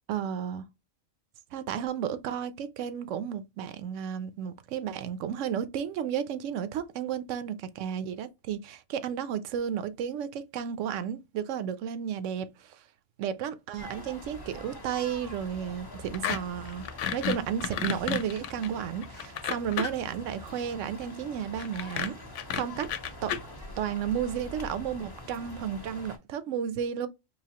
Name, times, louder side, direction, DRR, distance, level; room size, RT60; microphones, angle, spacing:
voice 1, 0.1-0.6 1.5-12.8 13.2-16.8 17.1-22.1 22.5-22.9 23.2-23.3 23.8-27.1, right 8 dB, 75° right, 0.9 m, -33 dB
sound 1, 13.8-26.2, left 1 dB, 20° left, 0.7 m, -45 dB
sound 2, 16.1-16.4 16.7-20.1 21.6-23.4, left 9 dB, 75° left, 0.9 m, -31 dB
4.8 x 2.7 x 2.8 m
omnidirectional pair, 1.3 m